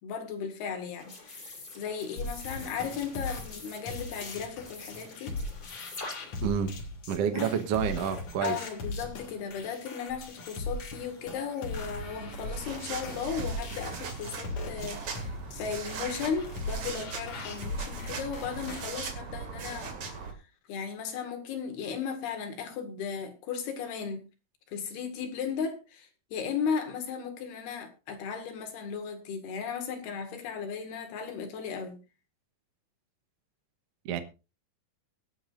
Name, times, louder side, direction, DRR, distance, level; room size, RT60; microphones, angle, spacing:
voice 1, 0.0-5.4 7.3-7.5 8.4-20.0 20.7-24.2 24.7-32.0, left 6 dB, 80° left, 3.9 m, -36 dB
sound 1, 1.0-6.4, left 2 dB, 25° left, 3.7 m, -45 dB
sound 2, 2.2-18.9, left 2 dB, 50° left, 2.8 m, -39 dB
voice 2, 7.1-8.6 34.0-34.2, right 8 dB, 75° right, 1.4 m, -28 dB
sound 3, 11.7-20.3, right 5 dB, 50° right, 3.2 m, -39 dB
23.0 x 8.6 x 2.5 m
omnidirectional pair, 4.5 m